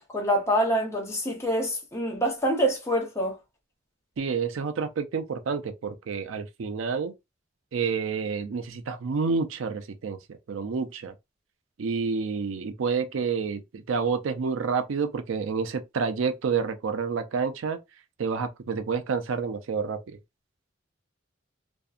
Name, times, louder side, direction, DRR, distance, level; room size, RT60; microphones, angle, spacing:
voice 1, 0.0-3.4, equal, 15° left, 0.7 m, -26 dB
voice 2, 4.2-7.1 7.7-11.1 11.8-17.8 18.2-20.0, right 5 dB, 85° right, 0.4 m, -29 dB
2.6 x 2.1 x 2.4 m
head